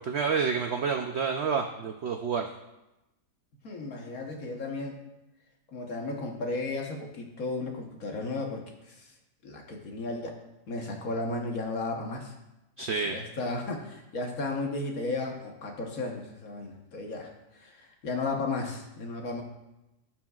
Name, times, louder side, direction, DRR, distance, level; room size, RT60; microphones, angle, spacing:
voice 1, 0.0-2.5 12.8-13.2, right 5 dB, 85° right, 4 dB, 0.5 m, -29 dB
voice 2, 3.6-5.0 5.7-9.1 9.4-10.3 10.7-12.3 13.0-19.4, left 3 dB, 60° left, 2 dB, 1.5 m, -34 dB
15.0 x 6.0 x 2.4 m, 0.96 s
omnidirectional pair, 1.8 m